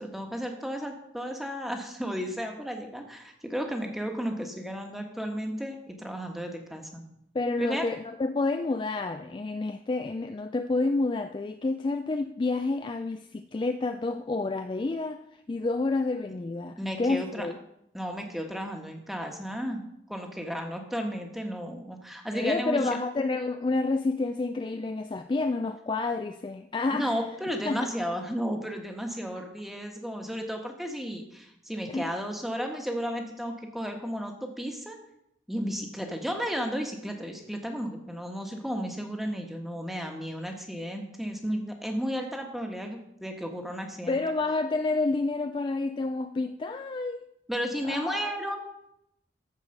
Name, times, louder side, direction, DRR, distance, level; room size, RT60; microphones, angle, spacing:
voice 1, 0.0-7.0 7.6-7.8 16.8-17.5 17.9-19.8 20.1-22.8 26.9-35.0 35.5-44.2 47.5-48.6, equal, ahead, 1.2 m, -33 dB
voice 2, 7.3-15.2 15.5-17.6 22.3-27.2 27.7-27.9 31.9-32.1 44.1-47.2 47.8-48.3, left 3 dB, 25° left, 0.3 m, -29 dB
13.5 x 4.8 x 6.5 m
head